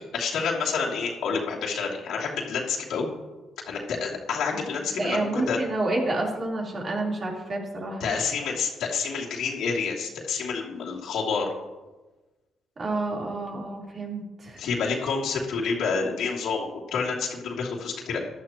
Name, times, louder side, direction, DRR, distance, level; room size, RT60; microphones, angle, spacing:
voice 1, 0.1-3.1 3.7-5.6 8.0-11.5 14.6-18.2, left 5 dB, 80° left, -4 dB, 2.9 m, -28 dB
voice 2, 5.0-8.1 12.8-14.6, right 2 dB, 40° right, -3 dB, 3.8 m, -29 dB
15.0 x 11.5 x 3.0 m, 1.2 s
cardioid pair, 90°, 0 cm